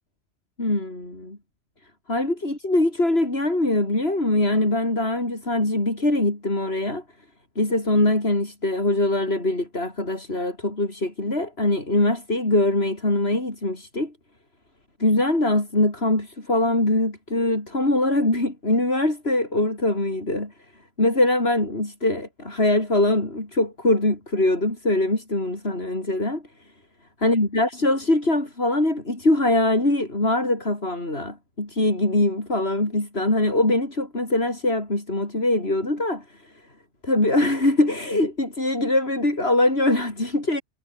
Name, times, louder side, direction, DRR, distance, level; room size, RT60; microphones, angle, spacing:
voice 1, 0.6-1.4 2.1-7.0 7.6-14.1 15.0-20.5 21.0-26.4 27.2-36.5 37.0-40.6, left 2 dB, 85° left, 6.0 m, -22 dB
omnidirectional pair, 1.0 m